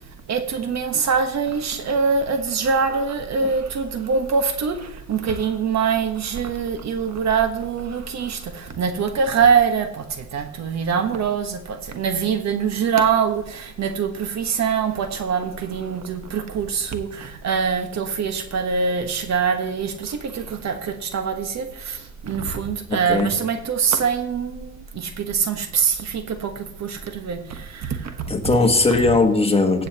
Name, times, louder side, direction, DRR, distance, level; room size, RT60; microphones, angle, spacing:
voice 1, 0.3-28.1, right 6 dB, 60° right, 1.3 m, -24 dB
voice 2, 22.9-23.3 28.3-29.9, left 3 dB, 20° left, 1.5 m, -19 dB
15.0 x 7.5 x 2.9 m
cardioid pair, 90°, 30 cm